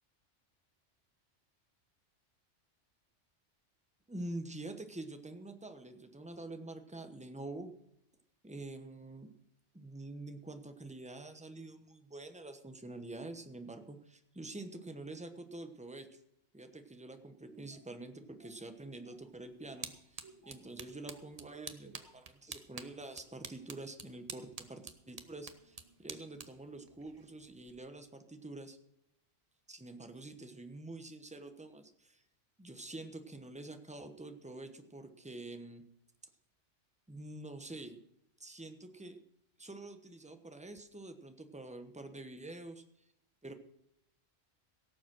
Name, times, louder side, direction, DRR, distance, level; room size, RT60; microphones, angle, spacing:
voice 1, 4.1-7.7 8.4-9.3 9.7-16.2 16.5-28.8 29.7-32.2 32.6-35.8 37.1-38.0 38.4-39.2 39.6-42.8 43.4-43.5, right 2 dB, 5° right, 7 dB, 1.0 m, -47 dB
Laughter, 17.5-21.4 21.8-22.3, right 2 dB, 65° right, 2.5 m, -60 dB
sound 1, 19.2-27.9, right 4 dB, 35° right, 0.9 m, -50 dB
17.5 x 7.2 x 6.2 m, 0.80 s
omnidirectional pair, 1.2 m